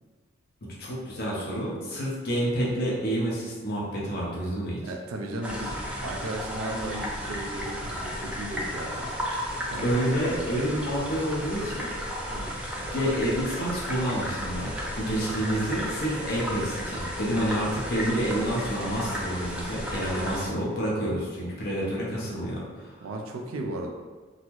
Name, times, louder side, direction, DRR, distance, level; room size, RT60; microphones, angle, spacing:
voice 1, 0.6-4.8 9.8-11.9 12.7-23.1, right 1 dB, 50° left, -5 dB, 0.7 m, -29 dB
voice 2, 4.8-9.1 9.7-9.9 12.3-12.5 15.3-15.5 23.0-23.9, right 1 dB, 90° right, 2 dB, 0.4 m, -35 dB
sound 1, 5.4-20.5, equal, 5° right, 0.4 m, -34 dB
3.8 x 2.0 x 3.0 m, 1.4 s
head